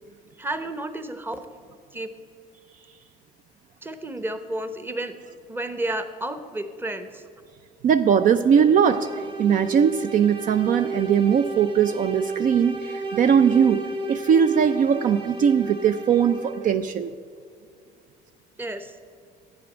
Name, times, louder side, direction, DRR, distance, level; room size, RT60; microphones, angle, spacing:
voice 1, 0.4-1.4 1.9-2.1 3.8-5.2 5.5-7.2 18.6-19.0, right 1 dB, 10° right, 9 dB, 0.8 m, -31 dB
voice 2, 7.8-9.1 9.4-13.8 14.1-17.1, right 7 dB, 55° right, 10 dB, 0.4 m, -20 dB
sound 1, 8.4-16.8, right 3 dB, 30° right, 1.5 m, -32 dB
11.5 x 8.8 x 6.1 m, 2.2 s
cardioid pair, 110°, 17 cm